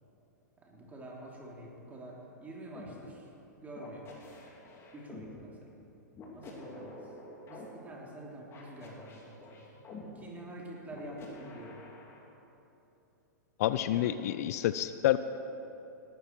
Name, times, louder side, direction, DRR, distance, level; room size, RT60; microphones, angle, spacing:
voice 1, 0.6-4.3 4.9-5.7 6.3-7.0 7.5-9.7 10.1-11.8 13.7-14.2, right 1 dB, 15° right, -2 dB, 3.1 m, -47 dB
sound 1, 2.7-2.9 3.8-5.3 6.1-7.7 8.5-10.0 10.9-12.2, left 3 dB, 25° left, 2.9 m, -48 dB
voice 2, 13.6-15.2, left 13 dB, 55° left, 13 dB, 0.5 m, -28 dB
18.0 x 13.0 x 4.5 m, 3.0 s
hypercardioid pair, 110°, 10 cm